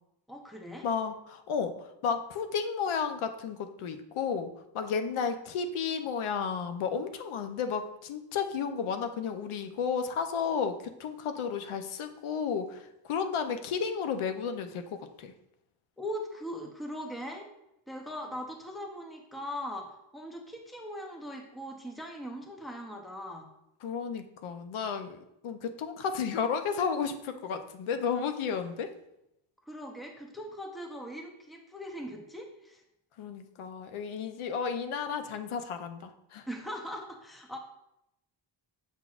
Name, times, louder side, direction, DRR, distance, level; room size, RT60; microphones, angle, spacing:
voice 1, 0.3-0.9 16.0-17.5 17.9-23.5 29.6-32.8 36.5-37.6, equal, ahead, 2 dB, 0.5 m, -40 dB
voice 2, 0.8-15.3 23.8-28.9 33.2-36.4, left 6 dB, 85° left, 8 dB, 0.7 m, -33 dB
7.3 x 5.9 x 2.4 m, 0.83 s
wide cardioid pair, 180°, 48 cm